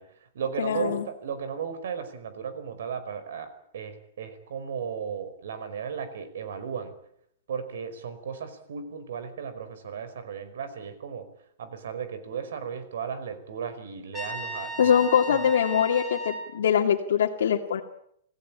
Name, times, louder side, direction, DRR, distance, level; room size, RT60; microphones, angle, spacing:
voice 1, 0.0-6.9 7.5-11.3 11.6-14.9 15.3-15.4, right 7 dB, 75° right, 11 dB, 5.2 m, -35 dB
voice 2, 0.6-1.0 14.8-17.8, left 8 dB, 85° left, 1 dB, 2.3 m, -23 dB
Trumpet, 14.1-16.5, right 1 dB, 5° right, 6.7 m, -36 dB
27.0 x 16.5 x 8.8 m, 0.71 s
supercardioid pair, 170°, 0 cm